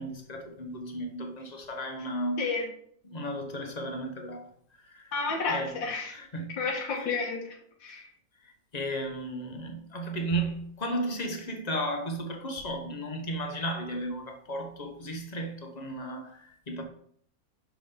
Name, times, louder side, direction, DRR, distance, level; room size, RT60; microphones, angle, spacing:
voice 1, 0.0-2.7 3.1-4.5 4.8-5.1 5.5-6.5 6.9-7.1 8.7-16.8, right 1 dB, 30° left, 0.8 m, -34 dB
voice 2, 2.4-2.7 5.1-6.2 6.6-8.0, left 4 dB, 85° left, 2.0 m, -31 dB
6.1 x 5.9 x 3.8 m
omnidirectional pair, 2.0 m